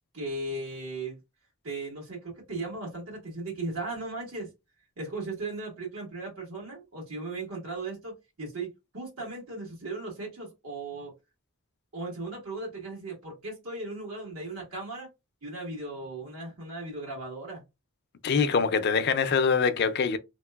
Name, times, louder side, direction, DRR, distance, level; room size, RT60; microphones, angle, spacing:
voice 1, 0.1-1.2 1.6-4.5 5.0-11.1 11.9-15.1 15.4-17.6, right 2 dB, 85° right, 1.5 m, -37 dB
voice 2, 18.2-20.2, left 5 dB, 50° left, 0.4 m, -24 dB
3.2 x 2.9 x 2.2 m
head